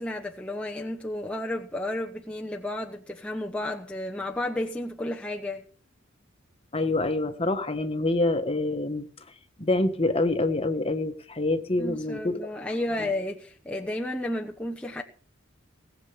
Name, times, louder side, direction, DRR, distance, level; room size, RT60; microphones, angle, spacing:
voice 1, 0.0-5.6 11.8-15.0, left 1 dB, 5° left, 1.0 m, -32 dB
voice 2, 6.7-9.1 9.6-12.5 13.0-13.1, left 2 dB, 30° left, 1.5 m, -26 dB
19.5 x 7.3 x 7.0 m
head